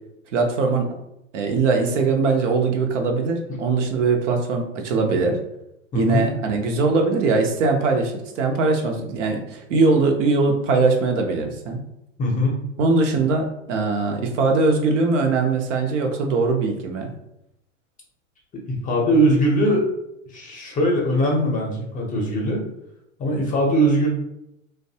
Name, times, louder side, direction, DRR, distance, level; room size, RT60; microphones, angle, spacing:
voice 1, 0.3-1.0 1.3-5.4 5.9-11.8 12.8-17.1, right 3 dB, 70° right, 3 dB, 0.7 m, -21 dB
voice 2, 5.9-6.3 12.2-12.6 18.5-19.9 20.3-22.6 23.2-24.1, right 1 dB, 20° left, -1 dB, 0.6 m, -21 dB
2.6 x 2.2 x 2.7 m, 0.83 s
hypercardioid pair, 110°, 38 cm